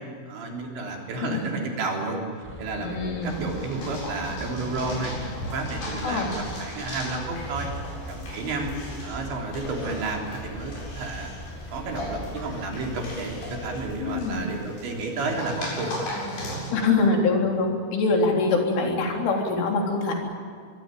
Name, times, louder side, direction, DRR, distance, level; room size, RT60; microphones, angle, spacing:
voice 1, 0.3-2.2 2.6-5.1 5.5-7.7 8.1-8.7 9.0-11.3 11.7-16.1, right 3 dB, 70° right, 1 dB, 5.8 m, -31 dB
sound 1, 2.4-14.4, equal, 5° left, 4.2 m, -41 dB
voice 2, 2.8-3.5 6.0-6.3 14.0-14.5 16.7-20.1, left 3 dB, 85° left, 1 dB, 6.1 m, -24 dB
sound 2, 3.2-16.7, equal, 55° left, 10.0 m, -37 dB
24.5 x 22.5 x 9.1 m, 2.2 s
omnidirectional pair, 5.4 m